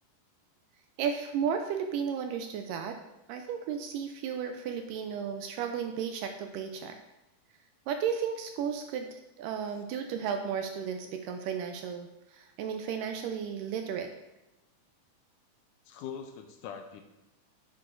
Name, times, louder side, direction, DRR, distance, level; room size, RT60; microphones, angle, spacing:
voice 1, 1.0-3.0 3.3-6.9 7.9-14.1, right 7 dB, 80° right, 5 dB, 2.1 m, -34 dB
voice 2, 15.9-17.0, left 7 dB, 80° left, 5 dB, 2.0 m, -42 dB
9.4 x 6.9 x 2.6 m, 0.98 s
omnidirectional pair, 4.0 m